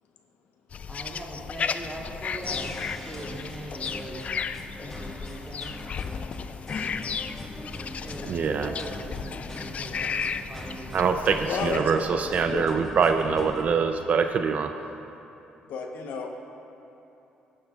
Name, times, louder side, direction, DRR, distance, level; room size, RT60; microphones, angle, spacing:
sound 1, 0.7-11.8, left 6 dB, 45° left, 0.3 m, -34 dB
voice 1, 0.9-4.3 4.8-5.8 8.0-11.0, right 1 dB, 15° right, -4 dB, 2.5 m, -41 dB
sound 2, 2.4-13.7, left 1 dB, 10° left, 1.6 m, -41 dB
voice 2, 8.3-8.7 10.9-14.7, right 5 dB, 55° right, 7 dB, 0.5 m, -24 dB
voice 3, 11.5-11.9 12.5-12.8 13.3-13.4 15.7-16.3, left 5 dB, 80° left, 2 dB, 1.0 m, -32 dB
17.0 x 9.6 x 2.4 m, 3.0 s
cardioid pair, 85°, 3 cm